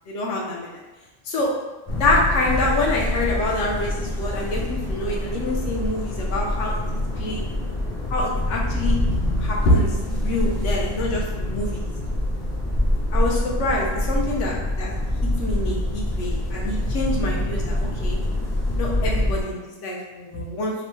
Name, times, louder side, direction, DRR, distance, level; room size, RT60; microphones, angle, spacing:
voice 1, 0.1-0.8 1.3-1.5 2.0-6.7 7.2-7.5 8.1-8.9 9.4-11.9 13.1-14.9 15.4-18.2 18.8-20.7, left 2 dB, 70° left, -2 dB, 1.0 m, -26 dB
sound 1, 1.9-19.4, left 1 dB, 30° left, 0.6 m, -25 dB
3.1 x 2.1 x 3.1 m, 1.1 s
omnidirectional pair, 1.4 m